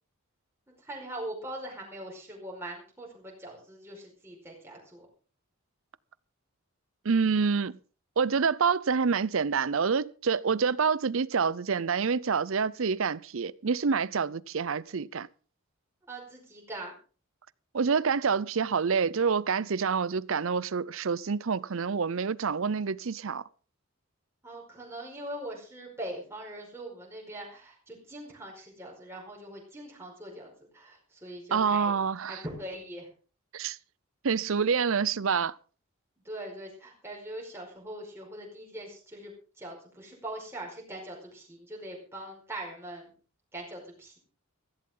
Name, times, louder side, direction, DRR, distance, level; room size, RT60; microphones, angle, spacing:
voice 1, 0.7-5.1 16.1-17.0 24.4-32.0 32.3-33.1 36.2-43.1 43.5-44.2, right 1 dB, 10° right, 5.0 m, -42 dB
voice 2, 7.0-7.8 8.2-15.3 17.7-23.4 31.5-32.4 33.5-33.8 34.2-35.5, right 5 dB, 65° right, 0.6 m, -27 dB
16.0 x 15.0 x 3.8 m
head